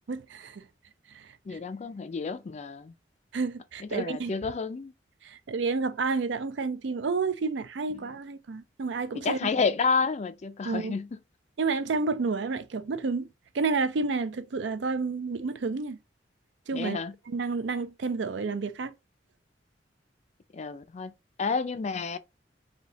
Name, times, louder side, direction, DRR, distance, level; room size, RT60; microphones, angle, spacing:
voice 1, 0.1-0.6 1.1-1.6 3.3-4.3 5.2-9.5 10.6-10.9 11.6-13.3 13.5-16.0 16.7-17.0 17.3-18.9, right 4 dB, 70° right, 0.5 m, -30 dB
voice 2, 1.5-2.9 3.8-4.9 7.9-8.1 9.2-11.2 16.7-17.1 20.5-21.1 21.4-22.2, left 5 dB, 40° left, 0.4 m, -30 dB
3.4 x 2.7 x 4.0 m
head